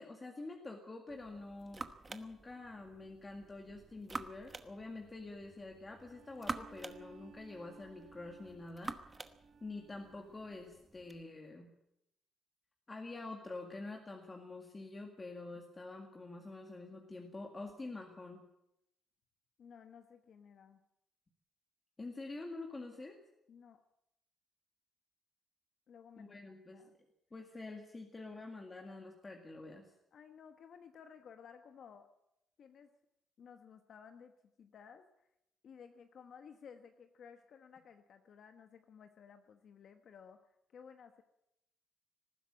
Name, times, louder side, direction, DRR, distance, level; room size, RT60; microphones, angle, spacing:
voice 1, 0.0-9.0 9.6-11.7 12.9-18.4 22.0-23.2 26.2-26.8 27.3-29.8, left 2 dB, 20° left, 2 dB, 2.0 m, -47 dB
sound 1, 1.1-11.2, right 3 dB, 20° right, 1.1 m, -49 dB
Bowed string instrument, 6.0-10.7, right 4 dB, 45° right, 3.3 m, -60 dB
voice 2, 19.6-20.8 23.5-23.8 25.9-26.9 30.1-32.1 32.6-32.9 33.4-34.3 34.6-35.0 35.6-41.2, left 7 dB, 50° left, 7 dB, 1.2 m, -56 dB
19.5 x 15.0 x 8.8 m, 0.82 s
cardioid pair, 165°, 0 cm